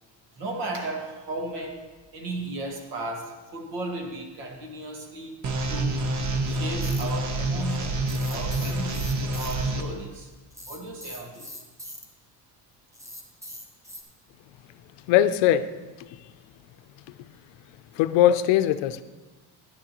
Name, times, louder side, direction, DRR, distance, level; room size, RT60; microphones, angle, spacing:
voice 1, 0.3-1.8 2.1-5.4 5.7-6.0 6.4-10.3 10.7-11.5, right 2 dB, 70° right, 3 dB, 1.8 m, -35 dB
sound 1, 5.4-9.8, right 2 dB, 40° right, 0.9 m, -27 dB
sound 2, 6.8-7.0 8.1-9.5 10.5-12.0 12.9-14.0, equal, 5° right, 0.8 m, -41 dB
voice 2, 15.1-15.7 16.1-16.2 17.2-17.3 17.9-19.0, left 11 dB, 85° left, 13 dB, 0.6 m, -21 dB
12.5 x 10.0 x 3.0 m, 1.2 s
cardioid pair, 145°, 43 cm